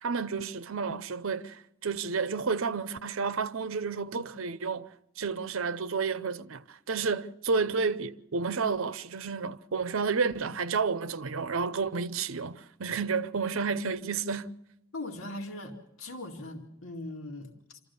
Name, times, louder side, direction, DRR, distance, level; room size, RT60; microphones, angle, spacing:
voice 1, 0.0-4.9 5.2-14.5, right 5 dB, 80° right, 0.7 m, -31 dB
voice 2, 14.9-17.8, left 2 dB, 80° left, 2.3 m, -40 dB
26.5 x 14.5 x 6.9 m
head